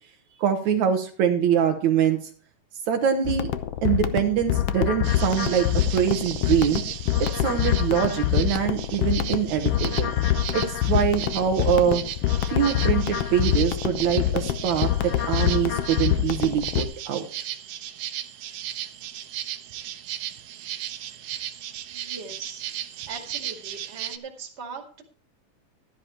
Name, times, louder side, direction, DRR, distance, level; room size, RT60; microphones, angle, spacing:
voice 1, 0.4-2.2 2.9-3.5 3.8-5.7 5.9-6.8 7.2-10.1 10.5-12.0 12.5-17.2, right 9 dB, 70° right, 4 dB, 2.3 m, -24 dB
sound 1, 3.2-16.8, left 11 dB, 75° left, 1.4 m, -25 dB
sound 2, 5.0-24.2, right 12 dB, 90° right, 2.4 m, -36 dB
voice 2, 21.0-21.4 21.9-22.7 23.1-25.0, right 5 dB, 25° right, 2 dB, 2.0 m, -40 dB
13.0 x 10.0 x 4.4 m, 0.43 s
omnidirectional pair, 3.6 m